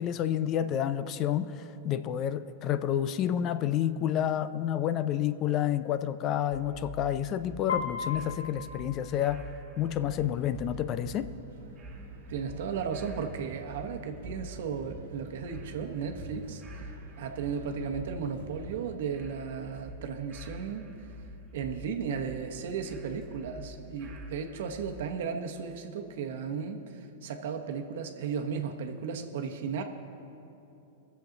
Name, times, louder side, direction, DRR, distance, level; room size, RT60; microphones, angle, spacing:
voice 1, 0.0-9.4 9.8-11.3, left 10 dB, 35° left, 13 dB, 0.4 m, -29 dB
sound 1, 6.5-25.2, right 1 dB, 25° right, 2.0 m, -47 dB
Piano, 7.7-9.7, left 6 dB, 80° left, 1.2 m, -37 dB
sound 2, 9.8-19.0, right 5 dB, 85° right, 1.4 m, -49 dB
voice 2, 12.3-16.6 17.2-20.9 21.5-26.9 27.2-29.8, right 6 dB, 70° right, 4 dB, 1.0 m, -35 dB
21.0 x 7.2 x 3.9 m, 2.8 s
hypercardioid pair, 135°, 0 cm